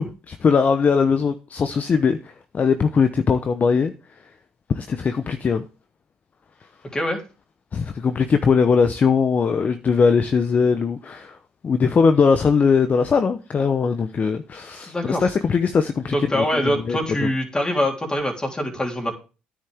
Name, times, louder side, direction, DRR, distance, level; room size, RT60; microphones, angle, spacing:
voice 1, 0.0-3.9 4.7-5.6 7.7-11.4 11.6-17.3, left 5 dB, 40° left, 0.8 m, -20 dB
voice 2, 14.9-15.2 16.1-19.1, equal, 20° left, 3.4 m, -24 dB
9.8 x 9.6 x 3.5 m
hypercardioid pair, 65°, 4 cm